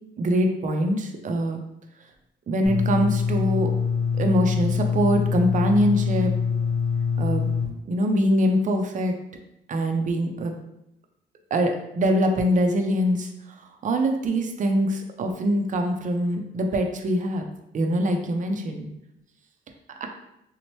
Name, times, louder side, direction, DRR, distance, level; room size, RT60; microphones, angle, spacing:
voice 1, 0.2-1.6 2.5-3.7 4.2-6.3 7.2-7.5 7.9-9.1 9.7-10.5 11.5-13.3 13.8-17.5 17.7-18.9 20.0-20.1, equal, 40° right, 4 dB, 0.5 m, -23 dB
sound 1, 2.7-7.7, left 6 dB, ahead, 1.0 m, -24 dB
2.9 x 2.0 x 3.0 m, 0.81 s
cardioid pair, 90°, 20 cm